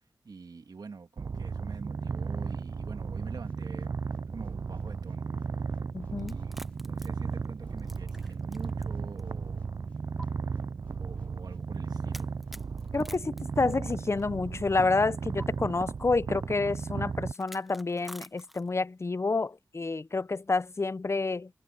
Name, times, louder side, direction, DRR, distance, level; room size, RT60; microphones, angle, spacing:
voice 1, 0.2-3.9 4.3-5.6 6.1-9.7 11.0-12.3, right 4 dB, 70° right, 1.9 m, -46 dB
Purr, 1.2-17.3, right 5 dB, 50° right, 0.4 m, -35 dB
sound 1, 3.4-14.3, left 1 dB, 20° left, 4.0 m, -60 dB
voice 2, 5.9-6.3 12.9-21.5, left 3 dB, 40° left, 0.6 m, -29 dB
sound 2, 6.2-8.9 9.2-9.3 10.2-10.3 12.1-14.2 15.4-15.5 17.3-18.8, equal, ahead, 0.9 m, -48 dB
cardioid pair, 50°, 7 cm